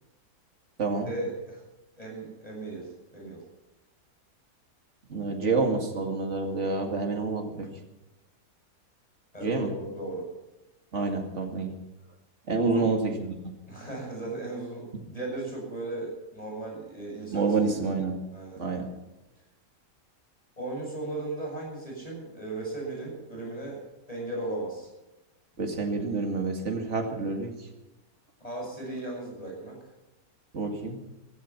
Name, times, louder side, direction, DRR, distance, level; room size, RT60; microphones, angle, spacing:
voice 1, 1.0-1.6 2.0-3.4 9.3-10.2 12.7-12.9 13.7-17.8 18.3-18.6 20.6-23.8 24.1-24.9 28.4-29.8, right 2 dB, 25° left, -1 dB, 7.7 m, -36 dB
voice 2, 5.1-7.7 9.4-9.7 10.9-11.7 12.5-13.5 17.3-18.2 18.6-18.9 25.6-27.5 30.5-31.0, right 3 dB, 50° right, 3 dB, 2.5 m, -28 dB
15.5 x 15.0 x 5.9 m, 0.99 s
omnidirectional pair, 1.5 m